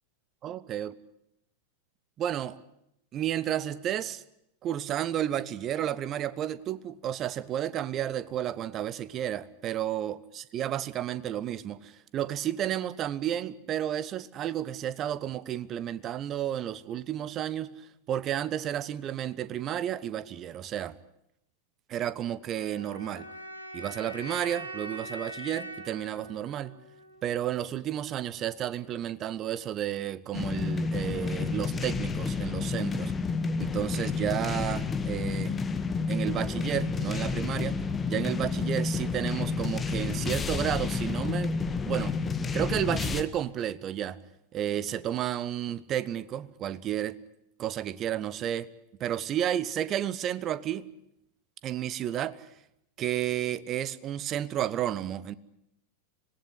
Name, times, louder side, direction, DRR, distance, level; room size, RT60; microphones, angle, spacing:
voice 1, 0.4-0.9 2.2-2.6 3.1-4.2 4.6-21.0 21.9-23.3 23.7-26.8 27.2-33.1 33.6-35.6 36.1-41.6 41.8-42.2 42.5-44.2 44.5-47.2 47.6-48.7 49.0-50.9 51.6-52.5 53.0-55.4, right 11 dB, 30° right, 1.0 m, -32 dB
sound 1, 22.5-27.5, right 1 dB, 80° right, 4.1 m, -43 dB
sound 2, 30.3-43.2, left 4 dB, 15° left, 1.6 m, -30 dB
26.0 x 18.5 x 10.0 m
figure-of-eight pair, 90°, 0 cm